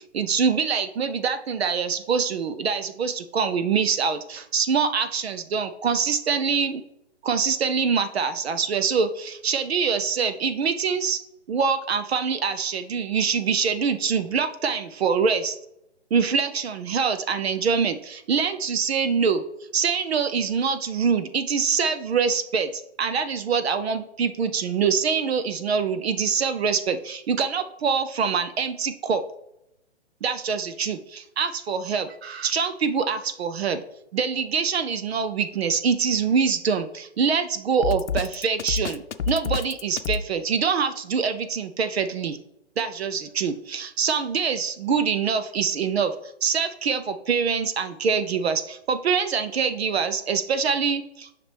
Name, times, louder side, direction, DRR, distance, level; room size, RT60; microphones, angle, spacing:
voice 1, 0.1-6.8 7.2-11.2 11.5-15.6 16.1-19.4 19.7-29.2 30.2-33.8 34.1-42.4 42.8-46.1 46.4-51.3, right 6 dB, 65° right, 10 dB, 0.7 m, -24 dB
Drum kit, 37.8-40.2, left 5 dB, 90° left, 0.7 m, -27 dB
7.2 x 5.9 x 3.3 m, 0.82 s
hypercardioid pair, 150°, 34 cm